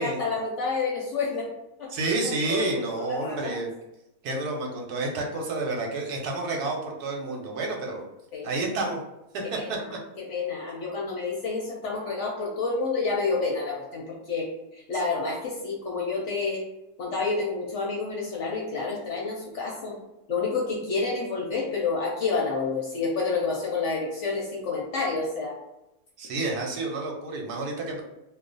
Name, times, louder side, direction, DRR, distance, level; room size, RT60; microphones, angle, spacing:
voice 1, 0.0-1.5 1.8-1.9 2.5-2.7 3.0-3.6 8.3-8.5 9.6-14.5 14.7-16.6 17.0-19.9 20.3-25.6, left 4 dB, 60° left, -2 dB, 0.8 m, -29 dB
voice 2, 1.9-3.7 4.2-8.0 8.4-9.0 9.5-9.8 26.2-28.0, right 2 dB, 85° right, 0 dB, 1.2 m, -29 dB
2.4 x 2.4 x 3.8 m, 0.90 s
omnidirectional pair, 1.6 m